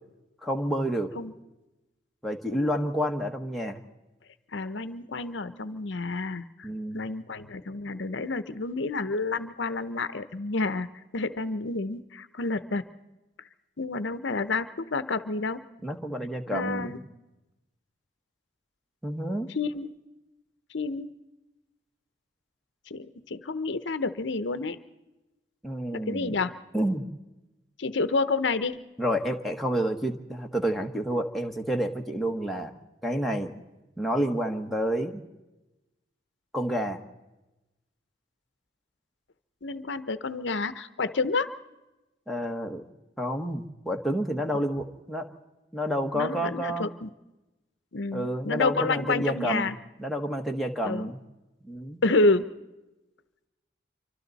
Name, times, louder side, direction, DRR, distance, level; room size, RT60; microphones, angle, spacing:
voice 1, 0.4-1.1 2.2-3.8 6.6-7.1 15.8-16.9 19.0-19.5 25.6-26.4 26.7-27.0 29.0-32.7 33.0-33.5 34.0-35.2 36.5-37.0 42.3-42.8 43.2-45.4 45.7-46.9 48.1-49.7 50.0-51.2 51.6-52.0, equal, ahead, 0 dB, 1.2 m, -29 dB
voice 2, 4.5-6.7 6.9-10.9 11.1-12.8 13.8-15.6 16.5-17.0 19.5-19.9 20.7-21.1 22.9-24.8 25.9-26.5 27.8-28.9 39.6-41.5 46.1-47.1 47.9-49.8 50.8-51.1 52.0-52.4, left 3 dB, 65° left, 12 dB, 0.8 m, -29 dB
27.5 x 24.5 x 4.1 m, 1.0 s
head